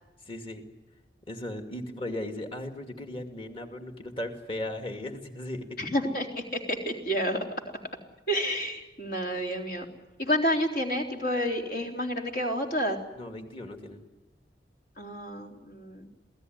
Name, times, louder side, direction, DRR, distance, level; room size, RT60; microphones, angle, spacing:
voice 1, 0.3-0.6 1.3-5.8 13.1-14.0, left 1 dB, 30° left, 5 dB, 2.4 m, -37 dB
voice 2, 5.8-7.4 8.3-9.9 10.2-13.0 15.0-16.1, equal, 60° left, 2 dB, 3.7 m, -29 dB
27.5 x 17.5 x 9.5 m, 1.1 s
head